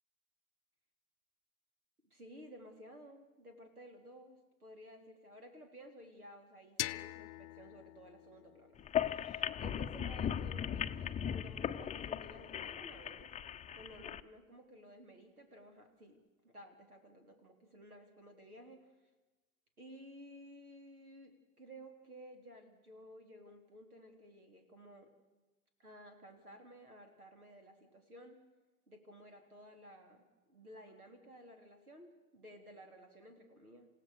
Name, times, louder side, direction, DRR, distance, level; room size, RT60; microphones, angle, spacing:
voice 1, 2.0-8.8 9.1-13.3 13.8-16.2 16.4-18.8 19.8-25.1 25.8-28.4 28.9-33.9, equal, 90° right, 5 dB, 3.9 m, -55 dB
sound 1, 6.8-9.6, left 19 dB, 50° left, 0.8 m, -44 dB
sound 2, 8.8-14.2, left 9 dB, 15° left, 0.7 m, -38 dB
28.5 x 16.5 x 6.7 m, 1.2 s
figure-of-eight pair, 90°, 43 cm